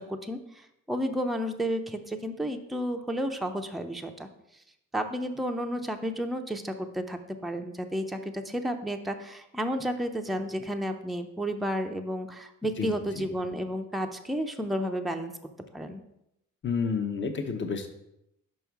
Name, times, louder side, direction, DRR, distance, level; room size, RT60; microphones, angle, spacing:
voice 1, 0.0-4.3 4.9-15.3 15.7-16.0, equal, ahead, 5 dB, 0.5 m, -32 dB
voice 2, 16.6-17.9, left 5 dB, 40° left, 6 dB, 0.9 m, -30 dB
5.5 x 5.2 x 4.7 m, 0.82 s
cardioid pair, 90°, 30 cm